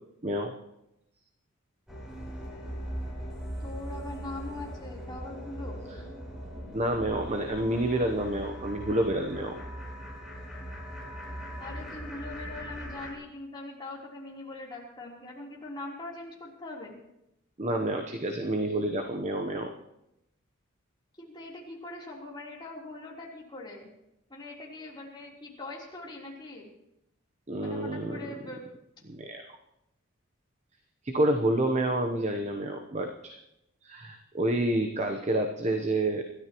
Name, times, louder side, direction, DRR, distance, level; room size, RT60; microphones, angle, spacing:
sound 1, 1.9-13.1, equal, 5° right, 3.9 m, -40 dB
voice 1, 3.6-5.8 11.6-16.9 21.2-23.9 24.3-26.7 27.6-28.7, left 2 dB, 20° left, -4 dB, 3.5 m, -42 dB
voice 2, 6.7-9.6 17.6-19.7 27.5-28.2 29.1-29.4 31.0-33.4 33.8-36.2, right 1 dB, 35° right, 4 dB, 0.9 m, -28 dB
26.0 x 13.0 x 3.0 m, 0.85 s
head